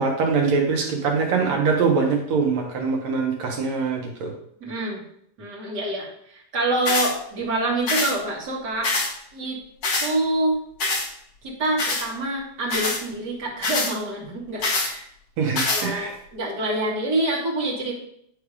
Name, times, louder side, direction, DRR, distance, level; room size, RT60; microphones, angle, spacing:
voice 1, 0.0-4.3 15.4-16.1, right 5 dB, 70° right, 1 dB, 2.5 m, -23 dB
voice 2, 4.6-5.0 5.4-8.9 9.3-9.6 10.0-10.6 11.4-15.0 15.7-17.9, right 1 dB, 40° right, -3 dB, 2.1 m, -26 dB
sound 1, 6.9-7.1 7.9-8.1 8.8-9.1 9.8-10.1 10.8-11.1 11.8-12.1 12.7-13.0 13.6-13.9 14.6-14.9 15.6-15.9, left 3 dB, 50° left, 1.4 m, -24 dB
10.0 x 3.4 x 4.9 m, 0.69 s
omnidirectional pair, 3.4 m